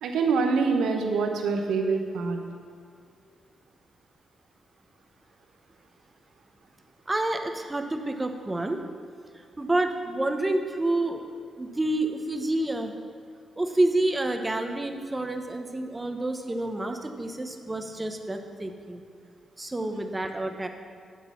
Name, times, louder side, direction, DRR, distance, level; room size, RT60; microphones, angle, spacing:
voice 1, 0.0-2.4 19.9-20.0, right 4 dB, 80° right, 4 dB, 0.8 m, -25 dB
voice 2, 7.1-8.8 9.3-11.3 11.6-12.9 13.6-19.0 19.6-20.7, right 2 dB, 20° right, 6 dB, 0.9 m, -28 dB
9.4 x 4.0 x 7.0 m, 2.2 s
supercardioid pair, 55°, 0 cm